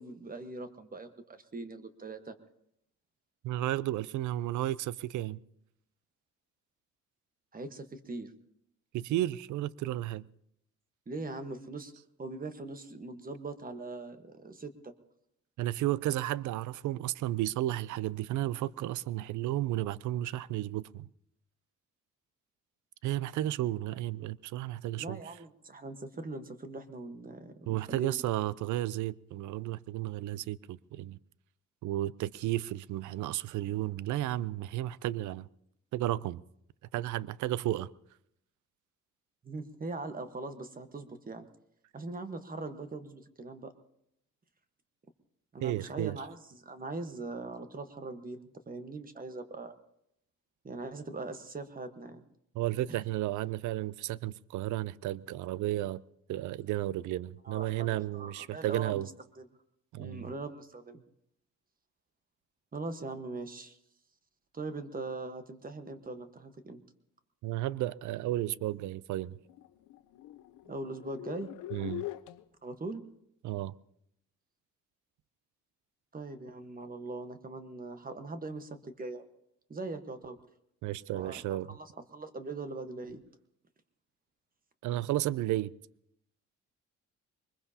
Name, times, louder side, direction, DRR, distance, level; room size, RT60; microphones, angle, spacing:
voice 1, 0.0-2.3 7.5-8.3 11.1-11.9 12.2-14.9 25.0-28.2 39.4-41.5 41.9-43.7 45.5-49.7 50.6-52.2 52.9-53.0 57.4-59.1 59.4-59.5 60.0-61.0 62.7-63.8 64.5-66.8 70.6-71.5 72.6-73.1 76.1-79.3 79.7-80.4 81.1-83.2, right 3 dB, 30° right, 1.3 m, -41 dB
voice 2, 3.4-5.4 8.9-10.3 15.6-21.1 23.0-25.2 27.7-31.2 31.8-35.5 35.9-36.4 36.9-37.9 45.6-46.1 52.5-56.0 56.3-59.1 59.9-60.3 67.4-69.4 71.7-72.0 73.4-73.7 80.8-81.7 84.8-85.7, right 14 dB, 75° right, 0.5 m, -33 dB
sound 1, 69.3-72.4, left 15 dB, 85° left, 0.7 m, -42 dB
23.0 x 21.0 x 2.8 m
cardioid pair, 90°, 30 cm